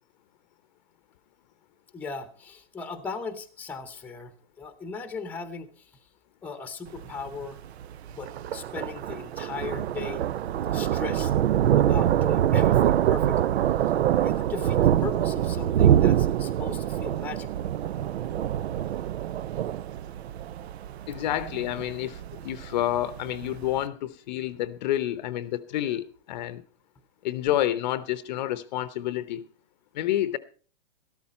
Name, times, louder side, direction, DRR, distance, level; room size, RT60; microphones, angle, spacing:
voice 1, 1.9-5.9 6.4-7.6 8.1-10.3 10.7-11.3 11.7-13.6 14.1-17.7, left 4 dB, 5° left, 0.9 m, -38 dB
Thunder, 6.9-23.8, right 11 dB, 80° right, 0.6 m, -25 dB
voice 2, 21.1-26.6 27.2-29.4 29.9-30.4, left 13 dB, 45° left, 0.8 m, -29 dB
13.5 x 13.0 x 4.2 m
hypercardioid pair, 145°, 32 cm